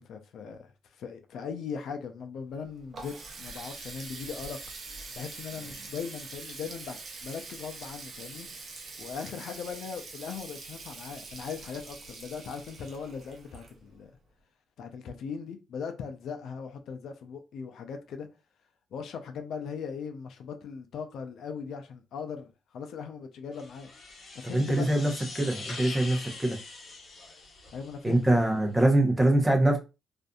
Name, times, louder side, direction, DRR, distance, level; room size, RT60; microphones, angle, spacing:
voice 1, 0.0-4.6 5.2-8.5 9.0-14.1 14.8-18.3 18.9-23.9 24.3-24.9 27.7-28.4, left 6 dB, 70° left, 0.4 m, -39 dB
Water tap faucet, 2.5-14.2, right 3 dB, 50° right, 0.7 m, -44 dB
sound 1, 23.5-28.3, left 3 dB, 50° left, 0.9 m, -43 dB
voice 2, 24.5-26.6 28.0-29.8, right 1 dB, 15° right, 0.8 m, -24 dB
2.5 x 2.5 x 2.3 m
cardioid pair, 90°, 0 cm